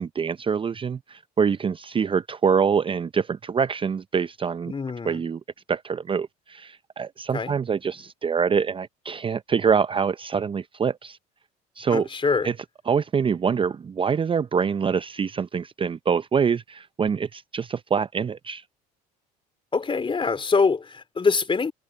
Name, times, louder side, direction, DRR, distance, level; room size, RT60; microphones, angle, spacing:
voice 1, 0.0-4.7 5.0-5.4 5.7-11.2 11.8-12.1 12.4-12.5 12.9-18.6, right 6 dB, 25° right, 0.6 m, -25 dB
voice 2, 4.7-5.2 7.3-7.6 11.9-12.5 19.7-21.7, left 4 dB, 25° left, 3.4 m, -24 dB
hypercardioid pair, 70°, 19 cm